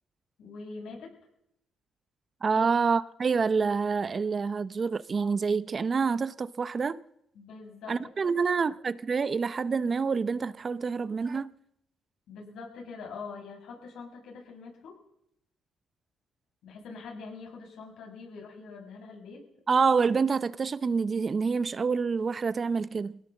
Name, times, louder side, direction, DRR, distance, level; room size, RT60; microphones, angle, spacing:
voice 1, 0.4-1.1 2.5-2.7 7.3-8.1 12.3-14.9 16.6-19.4, left 4 dB, 80° left, 7.7 m, -44 dB
voice 2, 2.4-7.0 7.9-11.5 19.7-23.2, right 5 dB, 40° right, 0.7 m, -27 dB
21.5 x 17.0 x 7.3 m
cardioid pair, 90°, 0 cm